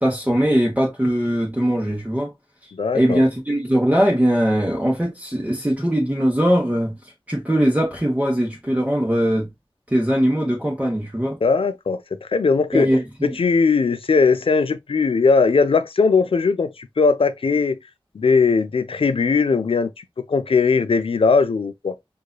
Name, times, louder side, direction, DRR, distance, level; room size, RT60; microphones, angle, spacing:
voice 1, 0.0-2.3 2.9-7.0 7.3-9.5 9.9-11.4 12.7-13.0, equal, 15° right, 1.1 m, -20 dB
voice 2, 2.7-3.2 11.4-12.9 13.2-17.8 18.1-21.9, left 4 dB, 85° left, 0.4 m, -19 dB
4.7 x 2.6 x 2.2 m
wide cardioid pair, 65°, 9 cm